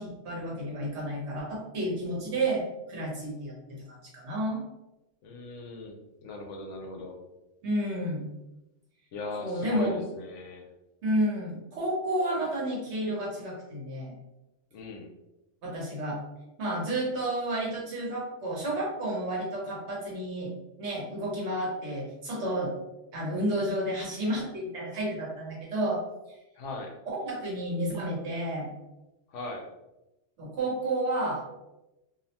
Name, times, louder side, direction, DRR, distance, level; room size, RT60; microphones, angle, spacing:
voice 1, 0.0-2.6 2.9-3.5 4.1-4.6 7.6-8.2 9.4-10.0 11.0-14.1 15.6-16.2 16.6-20.5 20.8-22.7 23.1-26.0 27.2-28.7 30.4-31.5, right 1 dB, 65° right, -4 dB, 1.1 m, -31 dB
voice 2, 5.2-7.2 9.1-10.7 14.7-15.1 26.6-26.9 29.3-29.7, left 2 dB, 80° left, 2 dB, 0.9 m, -38 dB
2.6 x 2.0 x 2.8 m, 0.96 s
omnidirectional pair, 1.3 m